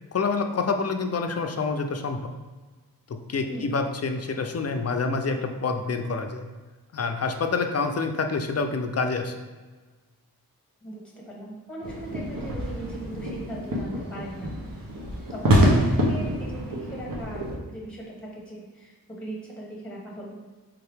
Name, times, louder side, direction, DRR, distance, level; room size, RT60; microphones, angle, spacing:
voice 1, 0.1-2.2 3.1-6.5 6.9-9.3, left 4 dB, 40° left, 6 dB, 0.4 m, -27 dB
voice 2, 3.4-3.7 10.8-14.5 15.3-20.5, right 1 dB, 5° left, -3 dB, 1.1 m, -39 dB
sound 1, 11.8-17.5, equal, 60° right, 0.9 m, -26 dB
3.5 x 2.8 x 3.4 m, 1.3 s
wide cardioid pair, 50°, 38 cm